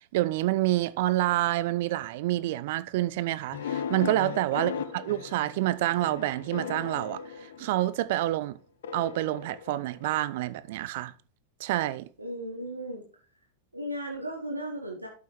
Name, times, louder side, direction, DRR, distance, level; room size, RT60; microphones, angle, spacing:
voice 1, 0.1-8.6 8.9-11.1 11.6-12.1, right 15 dB, 50° right, 0.4 m, -28 dB
sound 1, 3.5-8.1 8.8-10.4, left 7 dB, 60° left, 0.5 m, -37 dB
voice 2, 12.2-13.0 13.7-15.1, right 1 dB, 85° right, 1.1 m, -36 dB
11.5 x 5.5 x 3.1 m
figure-of-eight pair, 90°, 0 cm